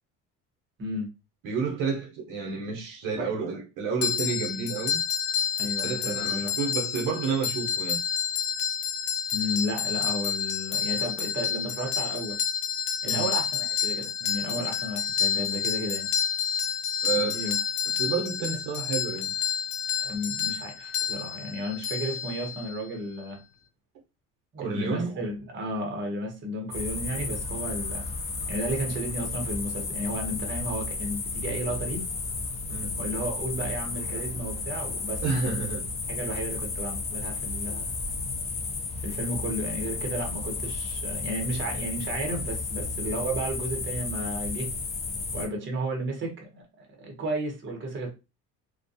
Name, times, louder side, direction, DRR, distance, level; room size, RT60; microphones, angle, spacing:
voice 1, 1.4-5.0 5.6-8.0 13.0-13.3 17.0-17.4 18.0-19.3 24.6-25.2 32.7-32.9 35.2-35.8, right 5 dB, 70° right, 0.9 m, -30 dB
sound 1, 4.0-22.8, left 8 dB, 70° left, 0.6 m, -29 dB
voice 2, 5.6-6.6 9.3-12.4 13.0-16.1 17.1-17.5 20.0-23.4 24.5-28.0 28.5-32.0 33.0-35.6 36.1-37.9 39.0-44.7 45.3-48.1, right 1 dB, 35° right, 1.0 m, -33 dB
sound 2, 26.7-45.5, left 3 dB, 20° left, 0.3 m, -33 dB
2.3 x 2.2 x 2.6 m
cardioid pair, 110°, 33 cm